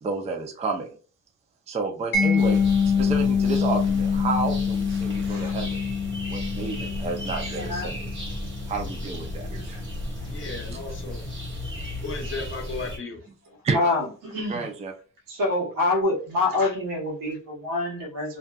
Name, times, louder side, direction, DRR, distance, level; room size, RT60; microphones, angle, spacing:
voice 1, 0.0-0.9 1.7-5.8 6.3-8.1 8.7-9.8 13.6-13.8 14.5-14.9, right 4 dB, 20° right, 3 dB, 0.4 m, -30 dB
Mallet percussion, 2.1-8.9, left 6 dB, 75° left, 0.8 m, -25 dB
sound 1, 2.4-13.0, left 1 dB, 35° right, 1.1 m, -34 dB
voice 2, 5.2-5.6 7.6-7.9 9.7-9.8 10.2-10.3 13.7-14.7 15.3-18.4, left 2 dB, 85° right, 0 dB, 1.2 m, -26 dB
voice 3, 10.3-11.3 12.0-13.2, left 3 dB, 40° left, 2 dB, 0.7 m, -35 dB
2.6 x 2.3 x 2.2 m, 0.37 s
cardioid pair, 155°, 33 cm